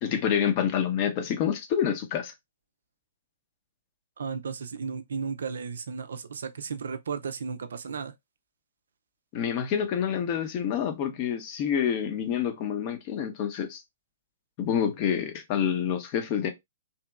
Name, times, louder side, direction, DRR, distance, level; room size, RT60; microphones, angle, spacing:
voice 1, 0.0-2.3 9.3-13.8 14.6-16.5, left 8 dB, 40° left, 0.7 m, -27 dB
voice 2, 4.2-8.1, right 5 dB, 65° right, 0.3 m, -34 dB
2.8 x 2.7 x 2.2 m
figure-of-eight pair, 120°, 0 cm